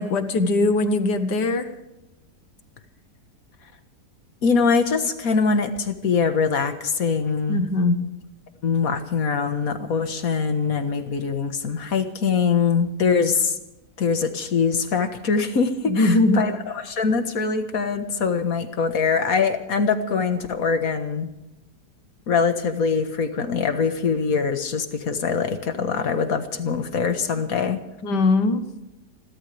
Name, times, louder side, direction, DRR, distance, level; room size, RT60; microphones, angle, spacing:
voice 1, 0.0-1.7 7.5-8.1 15.9-16.4 28.0-28.7, left 2 dB, 75° left, 9 dB, 1.9 m, -20 dB
voice 2, 4.4-7.6 8.6-13.6 14.0-21.3 22.3-27.8, left 5 dB, 55° left, 8 dB, 1.8 m, -23 dB
29.5 x 12.5 x 3.4 m, 0.94 s
omnidirectional pair, 1.8 m